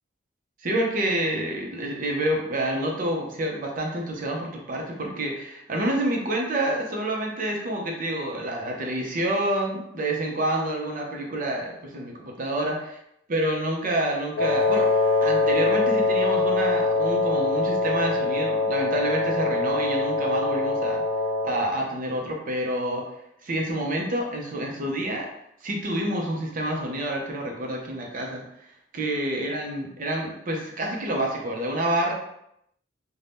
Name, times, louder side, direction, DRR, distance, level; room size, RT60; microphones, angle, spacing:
voice 1, 0.6-12.8 13.3-21.0 21.4-23.0 23.4-25.3 25.6-28.4 28.9-32.1, right 1 dB, 50° right, 0 dB, 0.6 m, -28 dB
Wind instrument woodwind instrument, 14.4-21.7, left 3 dB, 90° left, 0.5 m, -23 dB
2.6 x 2.1 x 3.4 m, 0.78 s
head